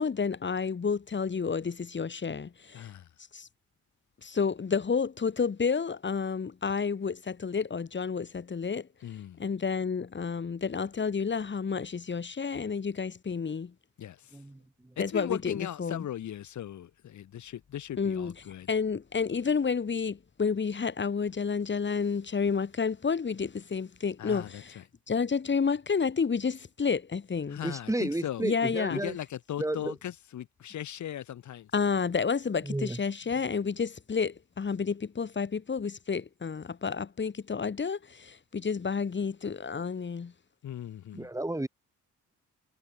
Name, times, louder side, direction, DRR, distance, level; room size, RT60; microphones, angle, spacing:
voice 1, 0.0-2.9 3.3-3.5 4.2-8.9 9.4-13.7 15.0-16.0 18.0-18.3 18.7-24.8 25.1-27.6 28.4-29.0 31.7-40.3, left 5 dB, 40° left, 5.6 m, -30 dB
voice 2, 2.7-3.1 9.0-9.4 14.0-14.4 15.0-18.7 24.2-24.8 27.5-28.5 28.9-31.7 40.6-41.3, left 11 dB, 70° left, 7.1 m, -38 dB
voice 3, 27.6-29.2 29.6-29.9 32.6-33.0 41.1-41.7, right 1 dB, 10° right, 5.4 m, -32 dB
cardioid pair, 90°, 30 cm